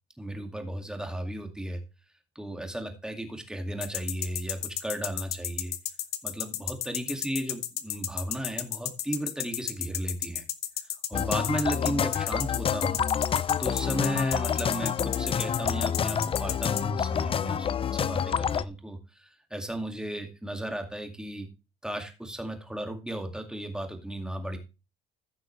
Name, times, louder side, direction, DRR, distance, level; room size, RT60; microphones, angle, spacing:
voice 1, 0.2-1.8 2.4-5.7 6.2-10.4 11.1-13.0 13.6-21.5 21.8-24.6, right 1 dB, 5° right, 5 dB, 2.2 m, -35 dB
sound 1, 3.8-16.8, left 12 dB, 70° left, 1.1 m, -32 dB
sound 2, 11.1-18.6, left 8 dB, 35° left, 0.5 m, -28 dB
14.5 x 6.2 x 3.2 m, 0.28 s
cardioid pair, 110°, 17 cm